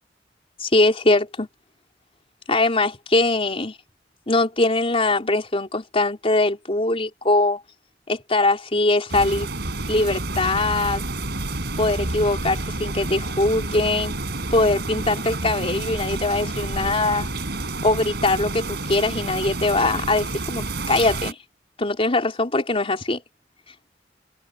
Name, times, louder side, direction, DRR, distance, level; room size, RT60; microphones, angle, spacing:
voice 1, 0.6-1.5 2.5-3.7 4.3-7.6 8.1-9.5 9.9-11.0 11.8-14.1 14.5-17.3 17.8-21.4 21.8-23.2, left 2 dB, 35° left, 4.2 m, -22 dB
sound 1, 9.1-21.3, right 2 dB, 65° right, 5.0 m, -29 dB
head